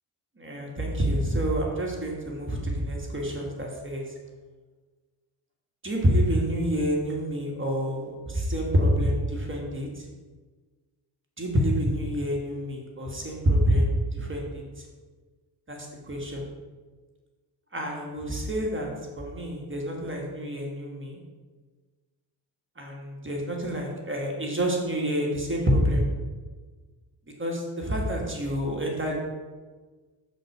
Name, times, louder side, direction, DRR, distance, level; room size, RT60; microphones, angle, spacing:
voice 1, 0.4-4.0 5.8-10.1 11.4-14.9 15.7-16.4 17.7-18.9 19.2-21.2 22.8-26.0 27.4-29.2, equal, 25° right, -1 dB, 1.6 m, -27 dB
6.0 x 4.0 x 5.9 m, 1.4 s
cardioid pair, 70°, 47 cm